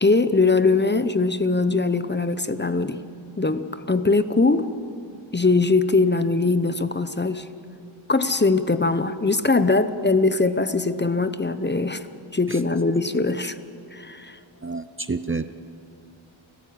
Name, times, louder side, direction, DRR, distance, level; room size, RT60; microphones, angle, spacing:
voice 1, 0.0-3.0 3.4-4.7 5.3-7.5 8.1-12.0 12.3-13.6 13.9-14.4, left 3 dB, 20° left, 11 dB, 0.8 m, -21 dB
voice 2, 14.6-15.5, right 4 dB, 25° right, 12 dB, 0.6 m, -29 dB
30.0 x 14.5 x 8.7 m, 2.6 s
wide cardioid pair, 110°, 48 cm